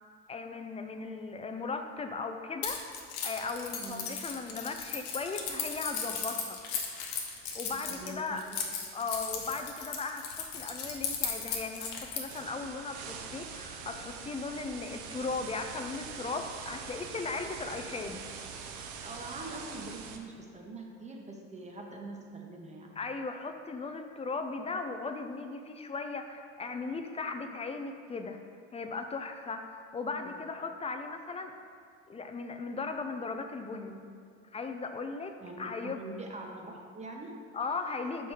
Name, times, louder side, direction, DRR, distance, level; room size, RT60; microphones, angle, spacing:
voice 1, 0.3-6.6 7.5-8.5 8.9-18.2 23.0-28.4 28.7-31.5 32.1-34.0 34.5-35.3 35.6-36.0 37.5-38.3, left 4 dB, 20° left, 5 dB, 0.4 m, -37 dB
Keys jangling, 2.6-12.4, left 6 dB, 85° left, 1.0 m, -36 dB
voice 2, 3.8-4.1 7.9-8.6 19.0-23.0 30.2-30.4 35.4-37.3, right 2 dB, 20° right, 1 dB, 1.0 m, -44 dB
sound 1, 12.3-20.2, right 6 dB, 65° right, 0.7 m, -43 dB
5.4 x 4.5 x 4.8 m, 2.1 s
supercardioid pair, 90°, 32 cm